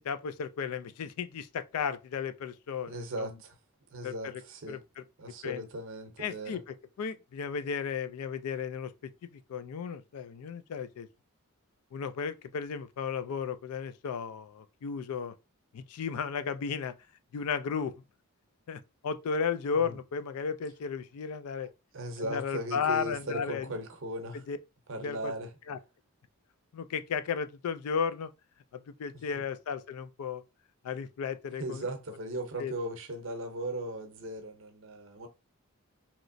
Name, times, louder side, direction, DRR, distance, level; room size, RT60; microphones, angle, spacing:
voice 1, 0.0-3.3 4.0-4.4 4.7-5.0 5.4-5.6 6.2-8.9 9.3-11.1 11.9-15.3 15.7-16.9 17.3-17.9 18.7-21.7 22.2-23.7 24.5-24.6 25.0-25.3 25.7-25.8 26.7-28.3 28.7-30.4 30.8-31.8 32.6-32.7, left 6 dB, 80° left, 0.3 m, -34 dB
voice 2, 2.9-3.5 3.9-4.8 5.2-6.6 19.8-20.0 21.6-24.4 24.9-25.5 31.6-35.3, right 1 dB, 60° right, 0.7 m, -38 dB
3.1 x 2.9 x 2.6 m
head